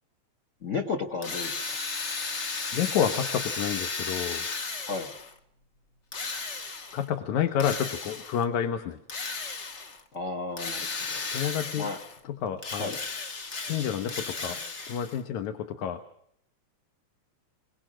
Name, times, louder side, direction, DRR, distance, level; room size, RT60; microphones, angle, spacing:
voice 1, 0.6-1.8 4.9-5.1 10.1-11.3 11.8-12.0 12.8-13.0, left 4 dB, 40° left, 5 dB, 1.1 m, -33 dB
Drill, 1.2-5.4 6.1-7.1 7.6-8.4 9.1-10.0 10.6-12.2 12.6-15.2, left 4 dB, 60° left, 0.7 m, -35 dB
voice 2, 2.7-4.5 6.9-9.0 11.3-11.9 12.2-13.0 13.6-16.0, left 9 dB, 80° left, 8 dB, 2.5 m, -29 dB
25.5 x 18.5 x 6.3 m, 0.68 s
omnidirectional pair, 3.3 m